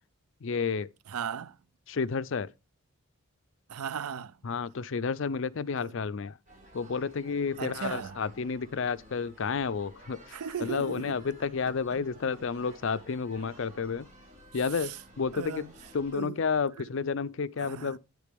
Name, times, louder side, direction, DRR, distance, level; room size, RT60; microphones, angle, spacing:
voice 1, 0.4-0.9 1.9-2.5 4.4-6.4 6.7-14.1 14.5-15.7 15.9-18.0, left 5 dB, 60° left, 0.5 m, -31 dB
voice 2, 1.1-1.6 3.7-4.3 5.8-5.9 7.6-8.2 10.3-11.2 14.8-14.9 15.3-15.7 16.1-16.4 17.6-18.0, right 7 dB, 90° right, 0.5 m, -36 dB
sound 1, 6.5-16.1, equal, 35° right, 5.9 m, -53 dB
9.1 x 8.2 x 3.4 m
head